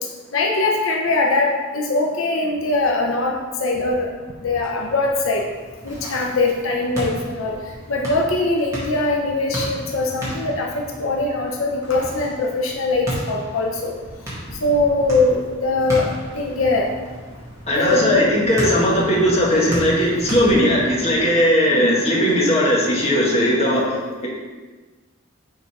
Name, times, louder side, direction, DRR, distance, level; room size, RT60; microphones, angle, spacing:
voice 1, 0.3-4.1 4.4-5.4 5.8-7.5 7.9-13.9 14.6-16.1 16.3-16.9 17.8-18.3 21.7-22.0 23.6-24.0, left 2 dB, 85° left, 0 dB, 0.8 m, -21 dB
sound 1, 4.5-21.2, equal, 15° right, 1.9 m, -34 dB
voice 2, 17.7-24.3, equal, 30° left, -4 dB, 1.4 m, -18 dB
6.7 x 4.0 x 4.7 m, 1.3 s
head